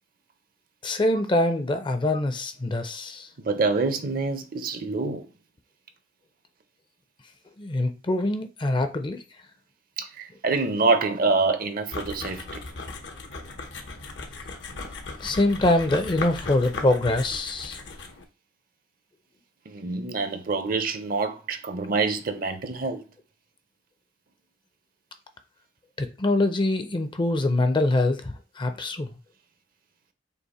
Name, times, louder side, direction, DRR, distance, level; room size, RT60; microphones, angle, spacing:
voice 1, 0.8-3.3 7.6-9.2 15.2-17.8 26.0-29.1, left 2 dB, 25° left, 0.5 m, -24 dB
voice 2, 3.4-5.2 10.0-12.6 19.7-23.0, right 3 dB, 55° right, 0.6 m, -26 dB
sound 1, 11.9-18.2, left 3 dB, 75° left, 0.8 m, -37 dB
5.5 x 2.1 x 4.1 m
head